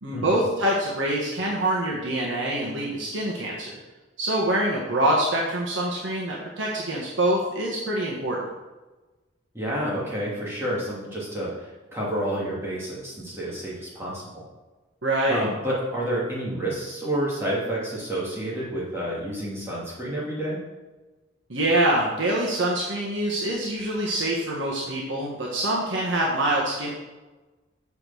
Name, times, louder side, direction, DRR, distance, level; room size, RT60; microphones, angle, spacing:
voice 1, 0.0-3.8 4.2-8.4 15.0-15.5 21.5-26.9, right 1 dB, 75° right, -4 dB, 1.5 m, -25 dB
voice 2, 9.5-14.4 15.3-20.6, right 1 dB, 15° right, -7 dB, 2.6 m, -29 dB
7.0 x 4.8 x 6.9 m, 1.2 s
head